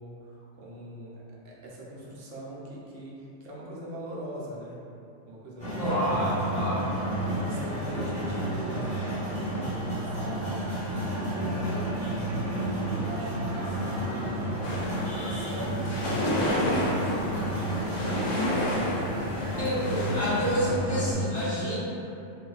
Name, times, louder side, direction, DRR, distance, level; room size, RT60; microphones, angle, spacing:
voice 1, 0.0-4.8 5.3-6.4 7.3-11.6 11.9-14.9 15.2-15.9 16.3-18.3 19.2-19.5, right 1 dB, 80° right, -5 dB, 0.9 m, -41 dB
sound 1, 5.6-21.1, right 1 dB, 5° left, 0.9 m, -31 dB
voice 2, 5.8-6.9 19.6-19.8 20.1-21.8, equal, 70° left, -11 dB, 1.3 m, -28 dB
sound 2, 14.6-20.6, left 1 dB, 90° left, 1.0 m, -31 dB
2.6 x 2.3 x 2.3 m, 2.7 s
omnidirectional pair, 1.2 m